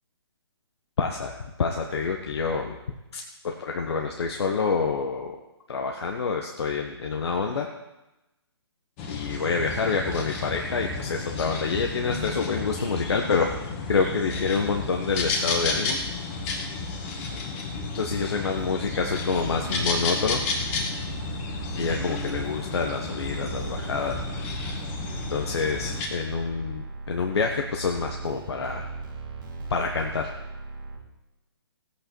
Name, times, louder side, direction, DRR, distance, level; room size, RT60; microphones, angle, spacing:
voice 1, 1.0-2.8 3.1-5.4 5.7-7.7 9.1-13.5 13.9-16.0 17.9-20.4 21.7-24.2 25.3-28.9 29.7-30.3, left 5 dB, 70° left, 2 dB, 1.3 m, -27 dB
sound 1, 9.0-26.1, left 3 dB, 25° left, 1.9 m, -32 dB
sound 2, 18.6-31.0, right 3 dB, 45° right, 2.0 m, -38 dB
17.0 x 8.6 x 4.6 m, 1.0 s
hypercardioid pair, 150°, 14 cm